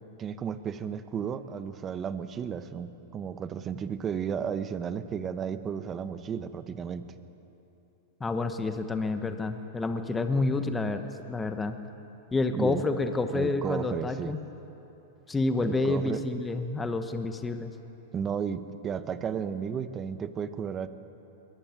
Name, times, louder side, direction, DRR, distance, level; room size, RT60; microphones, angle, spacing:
voice 1, 0.2-7.1 12.5-12.8 13.3-14.3 15.6-16.2 18.1-20.9, right 7 dB, 25° right, 11 dB, 1.0 m, -33 dB
voice 2, 8.2-11.8 12.3-14.4 15.3-17.7, left 3 dB, 10° left, 7 dB, 1.1 m, -29 dB
21.5 x 18.5 x 9.1 m, 3.0 s
hypercardioid pair, 135°, 0 cm